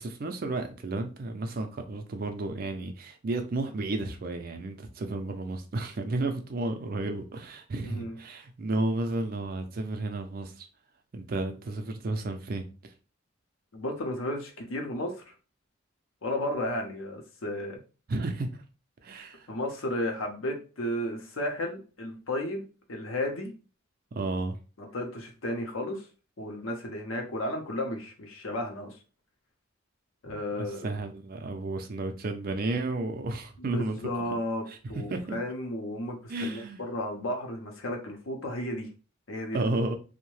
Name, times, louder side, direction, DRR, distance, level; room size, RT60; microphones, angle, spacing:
voice 1, 0.0-10.7 11.1-12.6 18.1-18.6 19.0-19.5 24.1-24.6 30.3-34.0 34.7-35.4 36.3-36.8 39.5-40.0, right 2 dB, 45° right, 0.4 m, -32 dB
voice 2, 7.8-8.2 13.7-15.3 16.2-17.8 19.5-22.6 22.9-23.5 24.8-26.1 26.4-29.0 30.2-30.9 33.6-34.6 34.9-38.9 39.3-39.7, left 1 dB, 85° left, 0.7 m, -33 dB
2.7 x 2.1 x 3.1 m
head